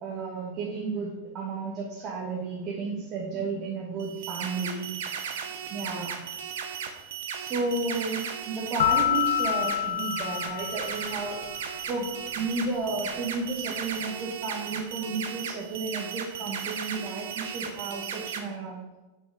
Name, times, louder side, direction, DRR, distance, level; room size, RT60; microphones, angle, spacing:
voice 1, 0.0-4.9 5.7-6.1 7.3-11.4 11.9-12.1 12.3-18.8, right 3 dB, 35° right, -2 dB, 1.3 m, -32 dB
sound 1, 4.0-18.4, right 7 dB, 60° right, 0.8 m, -36 dB
sound 2, 8.8-11.6, left 11 dB, 60° left, 0.4 m, -27 dB
6.2 x 6.1 x 5.0 m, 1.1 s
figure-of-eight pair, 90°, 0 cm